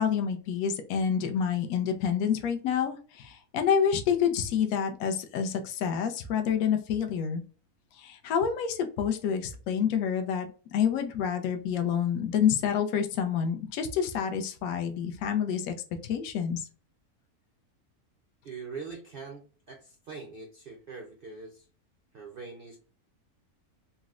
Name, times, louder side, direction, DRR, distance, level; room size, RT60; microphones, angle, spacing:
voice 1, 0.0-7.4 8.0-15.7 16.0-16.7, left 7 dB, 75° left, 6 dB, 1.0 m, -28 dB
voice 2, 18.4-21.7 22.1-22.8, right 4 dB, 70° right, 1 dB, 0.5 m, -43 dB
3.9 x 2.0 x 2.3 m, 0.37 s
omnidirectional pair, 1.6 m